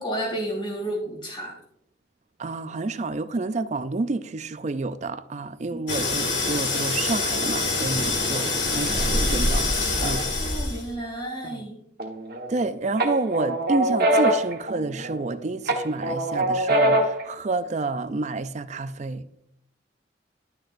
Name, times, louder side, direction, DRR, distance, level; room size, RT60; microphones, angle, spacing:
voice 1, 0.0-1.6 5.7-5.8 10.0-11.8, right 1 dB, 25° left, 2.7 m, -32 dB
voice 2, 2.4-9.7 10.0-10.2 11.4-11.6 12.5-19.3, right 3 dB, 35° right, 0.4 m, -29 dB
sound 1, 5.9-10.9, left 2 dB, 75° left, 2.0 m, -25 dB
sound 2, 12.0-12.6 13.0-15.3 15.7-17.3, right 1 dB, 55° right, 1.3 m, -23 dB
11.5 x 6.4 x 2.6 m
head